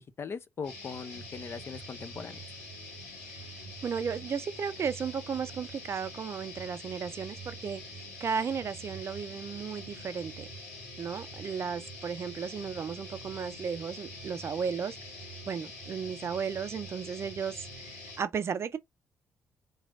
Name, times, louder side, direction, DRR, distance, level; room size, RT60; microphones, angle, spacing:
voice 1, 0.0-2.4, left 5 dB, 35° left, 0.6 m, -40 dB
sound 1, 0.6-18.2, left 1 dB, 70° left, 1.5 m, -45 dB
voice 2, 3.8-10.5 11.0-18.8, right 6 dB, 40° right, 0.5 m, -35 dB
4.0 x 3.1 x 2.4 m
figure-of-eight pair, 45°, 7 cm